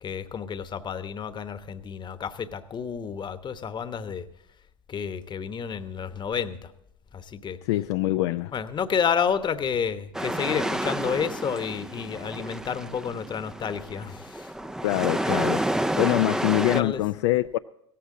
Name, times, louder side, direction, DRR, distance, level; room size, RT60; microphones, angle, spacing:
voice 1, 0.0-4.2 4.9-6.7 7.1-7.6 8.5-14.5 16.7-17.0, left 7 dB, 30° left, 1.0 m, -30 dB
voice 2, 7.7-8.5 14.8-15.6 16.0-17.6, left 16 dB, 65° left, 0.4 m, -24 dB
sound 1, 10.1-16.8, right 1 dB, 5° right, 0.5 m, -30 dB
16.5 x 14.5 x 3.8 m
hypercardioid pair, 80°, 16 cm